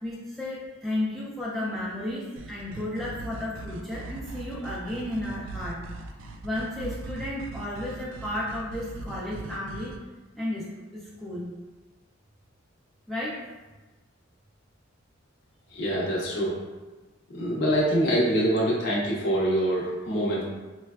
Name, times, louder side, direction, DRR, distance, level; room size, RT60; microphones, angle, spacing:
voice 1, 0.0-5.8 6.4-9.9 10.4-10.7 10.9-11.4 13.1-13.4, left 1 dB, ahead, -8 dB, 0.4 m, -33 dB
sound 1, 2.4-10.0, right 3 dB, 80° right, 0.3 m, -40 dB
voice 2, 15.7-16.6 17.3-20.4, equal, 60° left, -5 dB, 0.7 m, -25 dB
4.3 x 2.2 x 2.3 m, 1.2 s
head